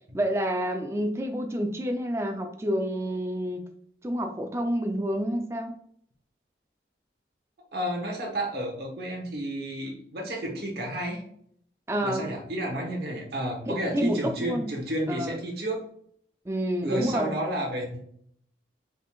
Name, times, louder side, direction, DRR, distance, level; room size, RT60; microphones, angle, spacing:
voice 1, 0.1-3.6 4.0-5.8 11.9-12.3 13.7-14.7 15.1-15.4 16.5-17.4, equal, 15° right, 4 dB, 0.4 m, -28 dB
voice 2, 7.7-11.2 12.0-15.8 16.8-18.0, right 1 dB, 60° right, -1 dB, 1.0 m, -31 dB
4.9 x 3.7 x 2.3 m, 0.64 s
head